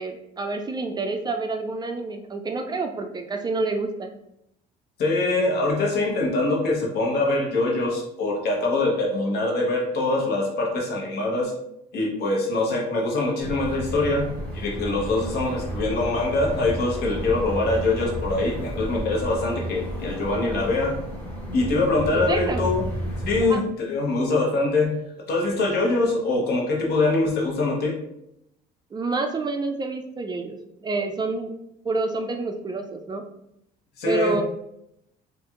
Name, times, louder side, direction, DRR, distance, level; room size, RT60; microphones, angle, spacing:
voice 1, 0.0-4.1 22.1-22.7 23.4-23.6 28.9-31.5 31.8-33.2 34.0-34.4, right 3 dB, 25° right, 4 dB, 0.4 m, -28 dB
voice 2, 5.0-11.5 11.9-20.9 21.5-22.9 23.3-25.0 25.3-27.9 34.0-34.4, left 2 dB, 70° left, -1 dB, 1.0 m, -23 dB
sound 1, 13.4-23.5, equal, 10° left, 1.3 m, -32 dB
4.4 x 2.5 x 2.4 m, 0.79 s
cardioid pair, 110°, 17 cm